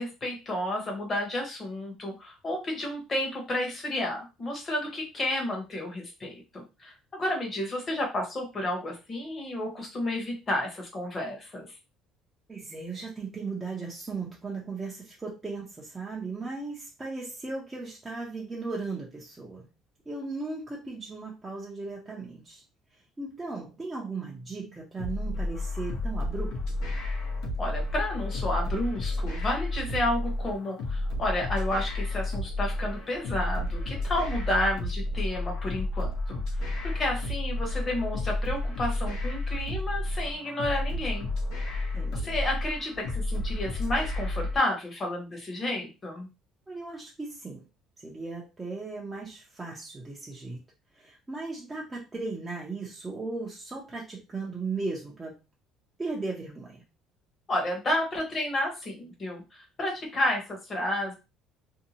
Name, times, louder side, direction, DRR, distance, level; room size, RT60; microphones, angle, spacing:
voice 1, 0.0-11.6 27.6-41.3 42.1-46.3 57.5-61.1, left 1 dB, 25° left, 0 dB, 1.0 m, -31 dB
voice 2, 12.5-19.6 20.1-22.6 23.2-26.8 41.9-42.4 46.7-47.6 48.0-50.6 50.9-55.3 56.0-56.8, right 3 dB, 15° right, -4 dB, 0.6 m, -37 dB
sound 1, 25.0-44.6, left 2 dB, 80° left, 0.9 m, -31 dB
2.7 x 2.2 x 2.8 m, 0.28 s
cardioid pair, 155°, 0 cm